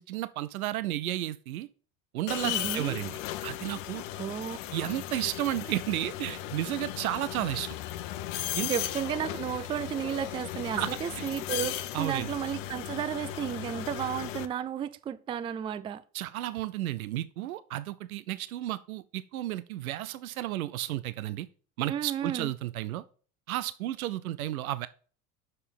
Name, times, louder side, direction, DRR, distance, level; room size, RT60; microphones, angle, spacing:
voice 1, 0.0-1.7 2.1-4.0 4.7-7.8 8.6-8.7 10.8-10.9 11.2-11.3 11.9-12.3 16.1-21.5 21.8-23.0 23.5-24.9, right 14 dB, 85° right, 0.5 m, -33 dB
sound 1, 2.3-14.5, left 13 dB, 60° left, 0.9 m, -36 dB
voice 2, 2.4-3.0 4.2-5.0 8.4-16.0 21.9-22.5, right 9 dB, 15° right, 0.3 m, -33 dB
6.5 x 5.5 x 5.2 m
hypercardioid pair, 80°, 41 cm